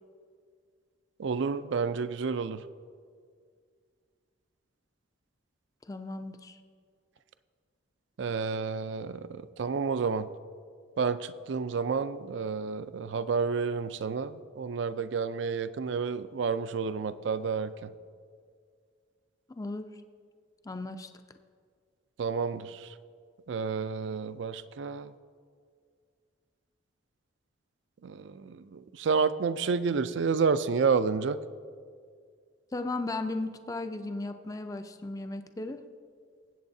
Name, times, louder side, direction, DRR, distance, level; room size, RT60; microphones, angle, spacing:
voice 1, 1.2-2.6 8.2-10.3 11.0-17.9 22.2-22.9 23.5-25.1 28.0-31.4, right 5 dB, 65° right, 14 dB, 0.4 m, -30 dB
voice 2, 5.9-6.6 19.5-19.9 20.6-21.1 32.7-35.8, left 2 dB, 20° left, 8 dB, 0.4 m, -36 dB
20.0 x 8.3 x 2.7 m, 2.1 s
head